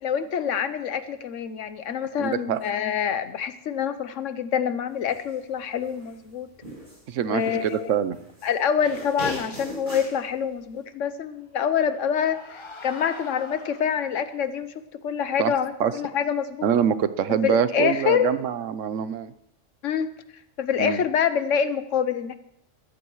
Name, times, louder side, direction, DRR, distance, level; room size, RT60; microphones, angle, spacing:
voice 1, 0.0-6.5 7.2-7.9 8.4-14.7 15.0-16.7 17.4-18.3 19.8-20.1 20.6-22.3, left 7 dB, 85° left, 12 dB, 1.2 m, -26 dB
voice 2, 2.2-2.6 7.1-8.2 15.4-15.5 15.8-15.9 16.6-19.3 20.8-21.0, right 8 dB, 85° right, 13 dB, 1.1 m, -24 dB
sound 1, 5.1-5.3 5.8-7.0 7.4-8.5 8.8-10.2, equal, 45° right, 8.3 m, -38 dB
sound 2, 11.4-14.4, left 3 dB, 25° left, 0.9 m, -44 dB
21.0 x 14.0 x 3.1 m, 0.75 s
omnidirectional pair, 1.3 m